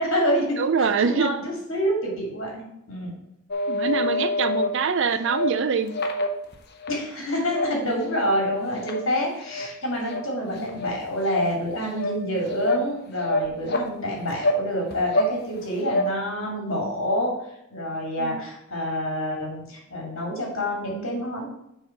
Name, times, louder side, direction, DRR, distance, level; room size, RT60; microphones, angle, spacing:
voice 1, 0.0-3.2 6.9-17.3 17.7-21.5, equal, 65° left, -1 dB, 2.5 m, -27 dB
voice 2, 0.6-1.3 3.7-5.9 13.6-13.8 18.2-18.4, right 5 dB, 60° right, 10 dB, 0.5 m, -24 dB
sound 1, 3.5-4.7 5.2-5.5 5.9-7.0 7.4-7.7 8.1-8.4 8.8-9.0 9.4-9.7 10.1-10.2 10.6-10.9 11.3-11.4 11.9-12.1 12.5-12.9 13.2-13.9 14.4-14.6 14.9-15.3 15.6-16.1, left 2 dB, 50° left, 0.8 m, -26 dB
7.2 x 3.6 x 5.8 m, 0.82 s
head